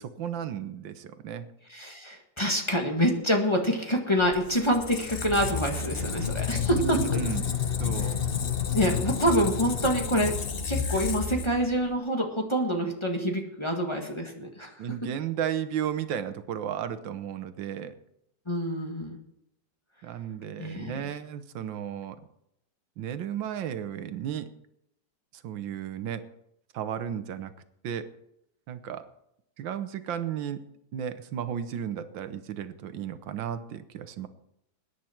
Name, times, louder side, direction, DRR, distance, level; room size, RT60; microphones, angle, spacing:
voice 1, 0.0-1.5 6.8-7.5 7.8-8.2 14.8-17.9 20.0-22.2 23.0-24.5 25.4-26.3 26.7-27.5 27.8-28.1 28.7-29.1 29.6-30.6 30.9-34.3, right 9 dB, 90° right, 11 dB, 1.6 m, -34 dB
voice 2, 1.7-7.0 8.0-8.1 8.7-10.4 10.6-14.7 18.5-19.2 20.6-21.0, equal, 15° left, 2 dB, 1.7 m, -26 dB
Squeak, 4.2-11.9, left 6 dB, 40° left, 0.9 m, -30 dB
21.0 x 10.0 x 4.5 m, 0.80 s
omnidirectional pair, 2.0 m